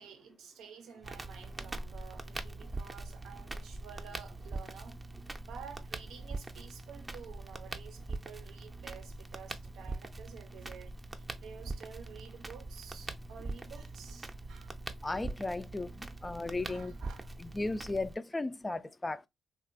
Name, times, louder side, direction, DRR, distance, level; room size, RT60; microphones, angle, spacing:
voice 1, 0.0-5.0 5.4-14.8 16.6-17.3, right 7 dB, 85° right, 0.5 m, -51 dB
Crackle, 1.0-18.1, right 2 dB, 25° right, 0.5 m, -43 dB
voice 2, 15.0-16.9 17.4-19.3, left 2 dB, 25° left, 0.4 m, -36 dB
2.9 x 2.4 x 2.5 m
supercardioid pair, 50°, 0 cm